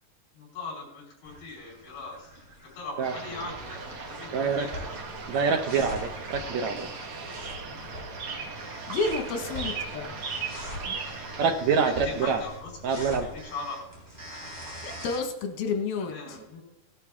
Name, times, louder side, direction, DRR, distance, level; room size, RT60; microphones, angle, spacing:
voice 1, 0.3-2.3 2.7-4.9 11.9-13.8 16.0-16.6, left 3 dB, 75° left, -6 dB, 6.3 m, -40 dB
sound 1, 1.2-15.2, equal, 10° right, 3.5 m, -43 dB
sound 2, 3.0-11.4, right 4 dB, 45° right, 2.2 m, -38 dB
voice 2, 4.3-4.7 5.3-6.8 10.9-11.0 11.4-12.4 12.8-13.3, right 5 dB, 75° right, 5 dB, 1.7 m, -26 dB
voice 3, 8.9-10.2 14.8-16.4, left 4 dB, 90° left, 4 dB, 3.4 m, -30 dB
18.0 x 11.5 x 3.7 m, 0.92 s
omnidirectional pair, 4.2 m